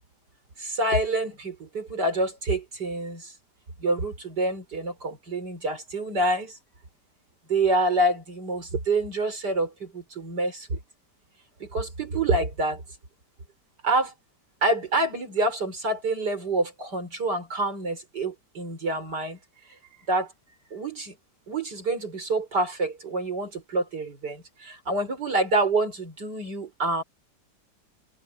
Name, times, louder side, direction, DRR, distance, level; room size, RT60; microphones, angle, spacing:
voice 1, 0.6-3.3 3.8-6.6 7.5-10.8 11.6-12.8 13.8-14.1 14.6-19.4 20.1-20.3 20.7-21.1 21.5-27.0, right 2 dB, 75° right, 5.1 m, -27 dB
omnidirectional pair, 1.8 m